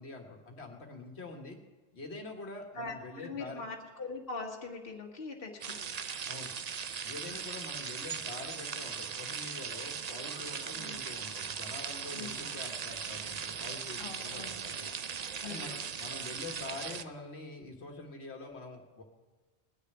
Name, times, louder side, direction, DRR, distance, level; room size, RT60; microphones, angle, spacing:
voice 1, 0.0-1.6 1.9-3.6 6.3-6.5 7.0-14.9 15.4-19.0, left 3 dB, 80° left, 3 dB, 1.8 m, -45 dB
voice 2, 2.8-5.9 7.3-7.4 10.8-11.0 12.1-12.4 14.0-14.6 15.4-15.8, left 3 dB, 60° left, 1 dB, 1.8 m, -42 dB
sound 1, 5.6-17.0, right 7 dB, 45° right, 0.6 m, -39 dB
19.0 x 6.6 x 9.8 m, 1.3 s
omnidirectional pair, 1.1 m